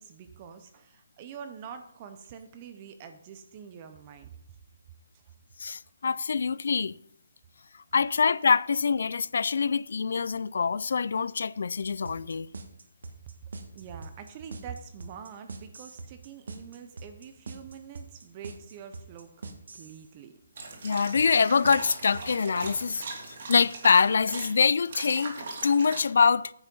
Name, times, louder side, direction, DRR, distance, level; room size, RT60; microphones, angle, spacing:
voice 1, 0.0-4.3 13.7-20.3, right 7 dB, 20° right, 0.6 m, -45 dB
voice 2, 5.6-7.0 7.9-12.5 20.8-25.4 25.6-26.5, left 5 dB, 60° left, 0.3 m, -24 dB
sound 1, 12.1-20.1 21.2-23.1, right 3 dB, 70° right, 1.6 m, -43 dB
sound 2, 20.6-24.5 24.9-26.0, right 3 dB, 45° right, 2.4 m, -40 dB
9.7 x 7.1 x 5.3 m
hypercardioid pair, 170°, 0 cm